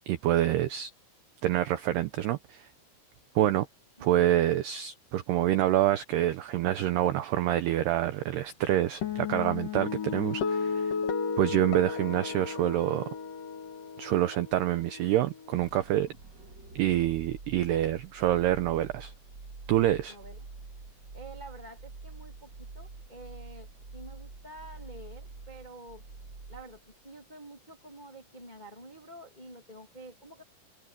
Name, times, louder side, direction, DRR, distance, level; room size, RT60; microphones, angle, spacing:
voice 1, 0.1-0.9 1.4-2.7 3.4-3.7 4.0-10.9 11.4-13.1 14.0-16.1 16.8-19.1 19.7-20.2, right 13 dB, 85° right, 2.3 m, -27 dB
sound 1, 9.0-15.6, left 6 dB, 50° left, 3.0 m, -34 dB
sound 2, 15.6-27.1, right 3 dB, 40° right, 1.6 m, -47 dB
voice 2, 20.1-20.5 21.1-26.0 26.5-30.4, right 1 dB, 15° left, 1.6 m, -48 dB
open air
omnidirectional pair, 6.0 m